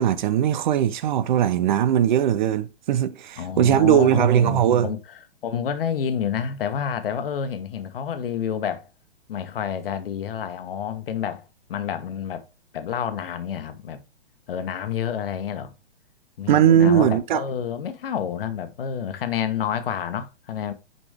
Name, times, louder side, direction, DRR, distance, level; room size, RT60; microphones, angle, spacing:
voice 1, 0.0-4.9 16.5-17.4, right 10 dB, 45° right, 0.6 m, -19 dB
voice 2, 3.4-8.9 9.3-11.4 11.7-12.5 12.7-14.0 14.5-15.7 16.4-20.7, left 8 dB, 60° left, 1.2 m, -29 dB
6.6 x 5.1 x 3.5 m
hypercardioid pair, 125°, 32 cm